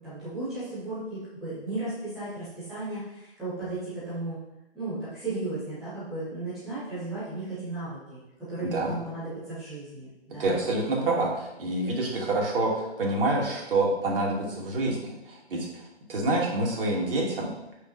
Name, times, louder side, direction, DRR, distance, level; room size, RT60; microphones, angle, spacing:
voice 1, 0.0-4.4 4.7-8.2 8.5-10.6, right 2 dB, ahead, -15 dB, 0.4 m, -35 dB
voice 2, 10.4-15.8 16.1-17.5, right 2 dB, 55° right, -2 dB, 2.6 m, -27 dB
7.8 x 5.0 x 4.2 m, 0.94 s
figure-of-eight pair, 140°, 33 cm